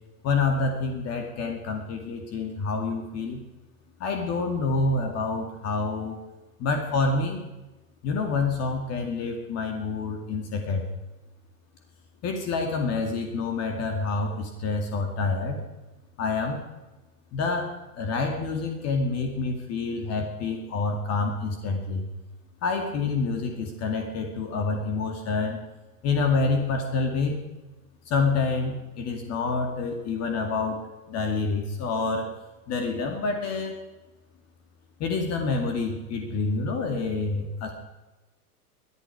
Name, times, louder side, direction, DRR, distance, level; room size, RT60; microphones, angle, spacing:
voice 1, 0.2-3.4 4.0-6.2 6.6-7.4 8.0-10.8 12.2-15.6 16.2-16.6 17.3-22.1 22.6-25.6 26.0-27.4 28.1-30.8 31.1-32.3 32.7-33.8 35.0-37.7, left 3 dB, 35° left, 3 dB, 2.3 m, -27 dB
20.5 x 11.0 x 4.8 m, 1.1 s
hypercardioid pair, 130°, 46 cm